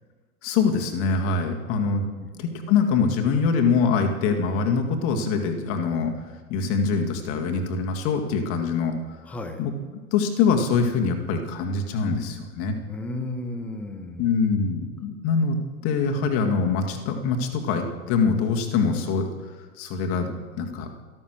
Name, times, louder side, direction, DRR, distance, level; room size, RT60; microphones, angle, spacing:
voice 1, 0.4-2.1 2.4-6.1 6.5-8.9 9.6-9.7 10.1-12.8 14.2-15.6 15.8-19.3 19.8-20.9, left 5 dB, 30° left, 4 dB, 1.8 m, -24 dB
voice 2, 1.7-2.3 9.2-9.6 12.9-14.3, left 1 dB, 5° left, 7 dB, 0.4 m, -34 dB
13.0 x 12.5 x 6.2 m, 1.4 s
figure-of-eight pair, 105°, 44 cm